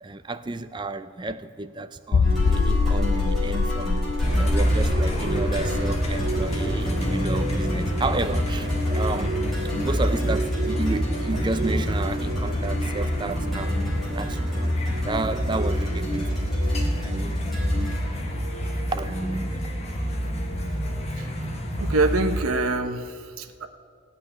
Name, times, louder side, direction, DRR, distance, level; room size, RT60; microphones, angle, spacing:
voice 1, 0.0-17.5 18.6-19.6, right 2 dB, 20° right, 0.4 m, -32 dB
sound 1, 2.1-7.6 7.9-8.0 8.5-8.6, left 4 dB, 70° left, 0.4 m, -25 dB
sound 2, 2.2-18.0, right 1 dB, ahead, 4.1 m, -33 dB
sound 3, 4.2-22.4, equal, 30° left, 1.3 m, -26 dB
voice 2, 21.8-23.7, right 2 dB, 75° right, 0.9 m, -25 dB
17.0 x 5.6 x 10.0 m
head